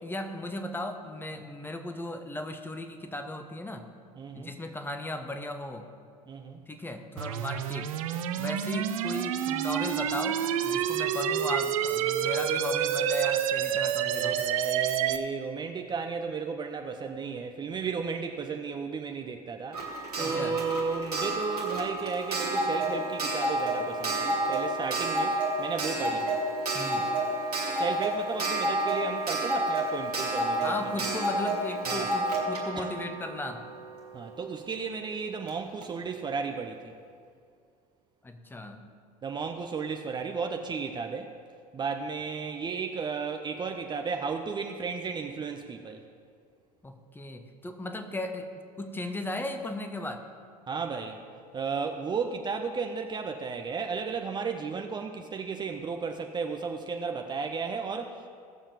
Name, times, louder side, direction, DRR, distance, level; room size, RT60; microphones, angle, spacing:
voice 1, 0.0-3.9 4.3-5.9 6.7-7.9 8.4-14.4 20.2-20.6 26.7-27.1 30.6-33.7 38.2-38.9 46.8-48.5 48.8-50.3, left 1 dB, 10° left, 6 dB, 1.0 m, -36 dB
voice 2, 4.2-4.5 6.3-6.6 14.0-19.8 20.2-26.4 27.7-31.1 31.8-32.1 32.8-32.9 34.1-36.9 39.2-41.3 41.7-46.0 50.7-51.2 51.5-58.3, right 5 dB, 25° right, 4 dB, 0.7 m, -34 dB
sound 1, 7.2-15.2, right 10 dB, 60° right, 0.7 m, -28 dB
Clock, 19.7-34.3 35.5-35.6 35.8-35.9, right 1 dB, 85° right, 1.9 m, -30 dB
16.5 x 7.2 x 5.0 m, 2.3 s
figure-of-eight pair, 70°, 19 cm